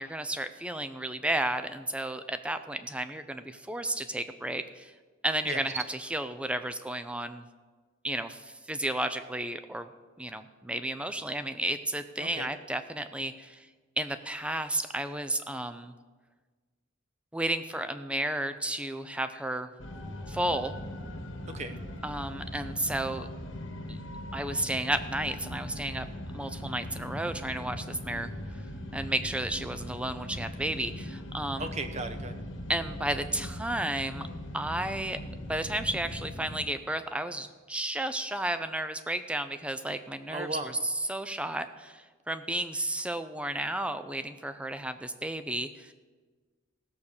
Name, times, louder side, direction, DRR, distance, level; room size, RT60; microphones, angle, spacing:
voice 1, 0.0-4.9 5.2-7.4 8.0-9.9 10.2-13.7 14.0-15.9 17.3-19.7 20.3-20.8 22.0-23.3 23.9-24.0 24.3-28.3 28.9-31.7 32.7-34.3 34.5-35.2 35.5-40.5 40.8-45.9, right 1 dB, 5° right, 10 dB, 0.5 m, -32 dB
sound 1, 19.8-36.6, left 1 dB, 70° left, 1.4 m, -40 dB
voice 2, 21.5-21.8 31.6-32.4 40.3-40.7, right 2 dB, 35° right, 8 dB, 0.9 m, -36 dB
16.0 x 6.5 x 7.1 m, 1.4 s
head